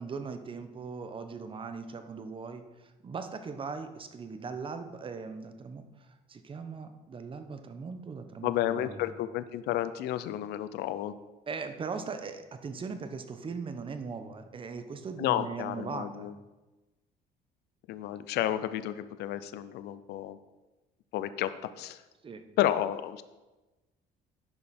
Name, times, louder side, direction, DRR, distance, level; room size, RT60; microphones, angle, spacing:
voice 1, 0.0-2.6 3.0-9.1 11.5-16.3 22.2-22.4, right 5 dB, 30° right, 8 dB, 0.8 m, -39 dB
voice 2, 8.4-11.1 15.2-16.3 17.9-20.4 21.1-22.0 22.6-23.2, left 12 dB, 75° left, 13 dB, 0.5 m, -31 dB
10.5 x 5.5 x 4.2 m, 1.1 s
cardioid pair, 110°, 17 cm